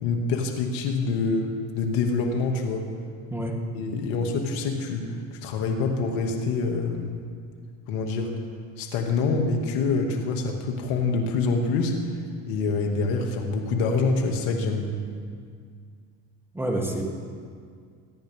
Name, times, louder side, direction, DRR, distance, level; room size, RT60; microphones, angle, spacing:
voice 1, 0.0-2.9 3.7-7.2 7.9-8.3 8.8-12.0 12.4-14.9, left 4 dB, 75° left, 2 dB, 2.2 m, -26 dB
voice 2, 16.5-17.0, right 1 dB, 5° right, -1 dB, 2.8 m, -28 dB
28.0 x 10.5 x 3.6 m, 2.1 s
supercardioid pair, 80°, 40 cm